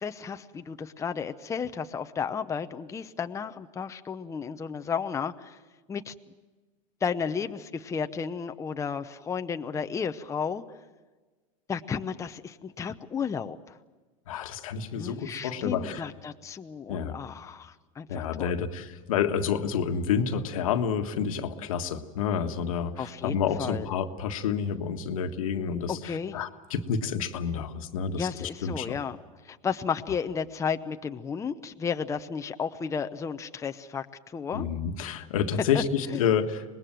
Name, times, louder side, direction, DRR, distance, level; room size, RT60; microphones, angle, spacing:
voice 1, 0.0-5.6 5.9-6.1 7.0-10.6 11.7-13.8 14.9-18.5 23.0-23.9 25.9-26.4 28.2-29.2 29.4-34.7 35.7-35.8 36.1-36.2, left 6 dB, 15° left, 8 dB, 0.8 m, -33 dB
voice 2, 14.3-16.1 16.9-17.2 18.1-29.0 34.5-36.6, left 7 dB, 85° left, 6 dB, 1.6 m, -29 dB
25.0 x 20.5 x 7.6 m, 1.3 s
supercardioid pair, 120°, 17 cm